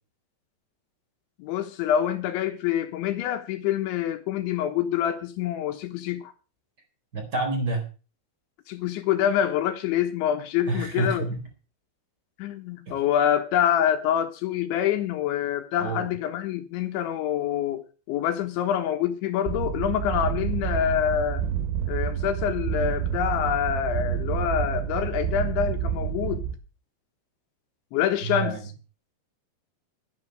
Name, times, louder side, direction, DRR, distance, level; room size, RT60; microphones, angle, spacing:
voice 1, 1.4-6.3 8.7-11.3 12.4-21.4 21.9-26.4 27.9-28.6, left 10 dB, 75° left, 3.3 m, -26 dB
voice 2, 7.1-7.8 10.7-11.4 12.9-13.0 15.8-16.1 28.2-28.6, right 3 dB, 20° right, 3.7 m, -28 dB
sound 1, 19.5-26.5, right 9 dB, 90° right, 5.6 m, -29 dB
12.5 x 10.5 x 6.4 m
omnidirectional pair, 5.9 m